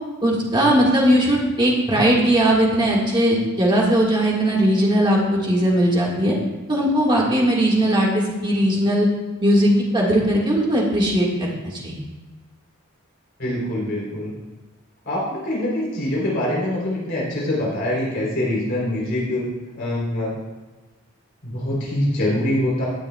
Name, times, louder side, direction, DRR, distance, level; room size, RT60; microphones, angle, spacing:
voice 1, 0.2-6.3 6.7-9.1 9.4-11.9, right 1 dB, 20° right, -2 dB, 1.6 m, -19 dB
voice 2, 13.4-14.3 15.0-19.4 19.8-20.3 21.4-22.9, left 1 dB, 50° left, -5 dB, 3.2 m, -24 dB
17.5 x 6.9 x 2.3 m, 1.2 s
head